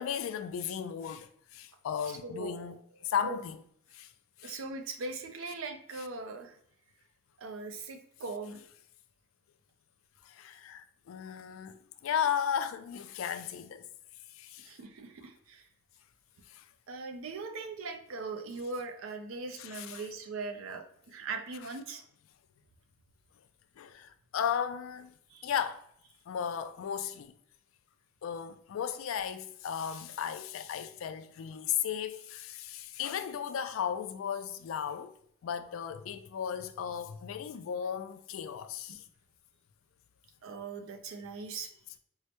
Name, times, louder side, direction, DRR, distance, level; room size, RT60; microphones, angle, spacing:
voice 1, 0.0-2.8 3.0-3.6 3.9-4.1 4.4-4.6 10.2-13.9 14.3-14.7 16.5-16.6 19.6-20.0 23.8-25.1 25.4-25.8 26.3-27.3 28.2-35.1 35.4-39.0, left 8 dB, 80° left, 0.3 m, -35 dB
voice 2, 2.1-2.8 3.2-3.4 4.4-6.6 7.4-8.6 14.6-15.7 16.9-22.0 25.3-25.5 38.9-39.0 40.4-41.7, right 3 dB, 80° right, 0.5 m, -40 dB
4.6 x 2.1 x 2.8 m
head